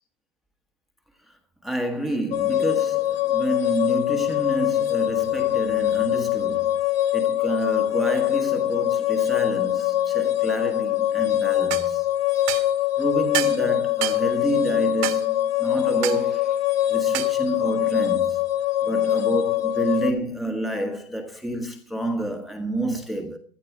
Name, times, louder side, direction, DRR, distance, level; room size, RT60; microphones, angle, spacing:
voice 1, 1.6-6.8 7.1-12.0 12.5-12.6 13.0-18.4 18.8-23.4, right 1 dB, ahead, 1.4 m, -29 dB
sound 1, 2.3-20.1, left 13 dB, 80° left, 2.0 m, -23 dB
sound 2, 11.7-11.9 12.5-12.7 13.3-13.6 14.0-14.2 15.0-15.2 16.0-16.2 17.1-17.4, right 16 dB, 40° right, 1.7 m, -28 dB
16.5 x 12.0 x 4.8 m
supercardioid pair, 155°, 29 cm